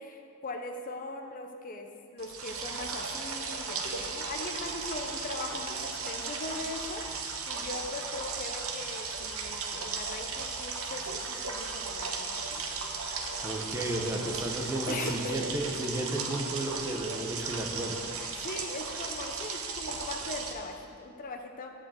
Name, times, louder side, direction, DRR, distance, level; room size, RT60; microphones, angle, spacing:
voice 1, 0.0-5.8 6.1-12.7 14.9-15.5 18.4-21.7, left 2 dB, 40° left, 4 dB, 0.6 m, -40 dB
sound 1, 2.2-20.5, right 4 dB, 75° right, 0.9 m, -36 dB
voice 2, 13.4-18.0, right 1 dB, 15° right, 1 dB, 0.9 m, -33 dB
8.7 x 4.9 x 7.3 m, 2.3 s
head